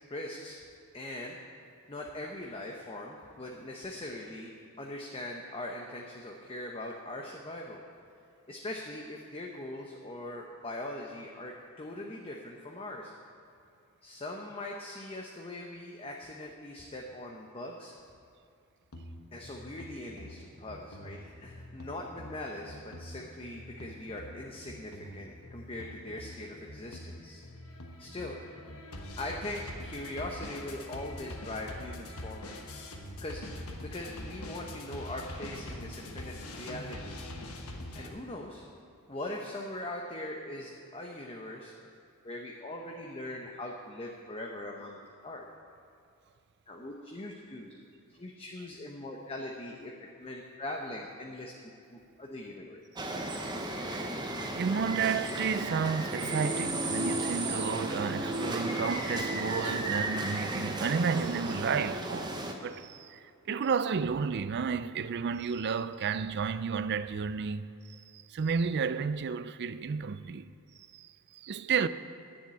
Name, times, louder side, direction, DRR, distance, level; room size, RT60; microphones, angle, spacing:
voice 1, 0.1-0.6 0.9-1.4 1.9-7.8 8.5-13.1 14.0-17.9 19.3-27.4 28.0-28.4 29.2-32.5 33.2-37.2 37.9-38.6 39.1-41.7 42.2-45.5 46.7-47.7 48.2-49.9 50.2-51.5 51.9-52.8, left 1 dB, 25° left, 0.8 m, -41 dB
sound 1, 18.9-38.1, left 1 dB, 75° left, 1.3 m, -44 dB
sound 2, 53.0-62.5, right 1 dB, 20° right, 0.8 m, -34 dB
voice 2, 54.5-62.4 62.6-67.6 68.1-70.5 70.9-71.9, right 6 dB, 50° right, 0.4 m, -32 dB
10.5 x 7.3 x 8.5 m
head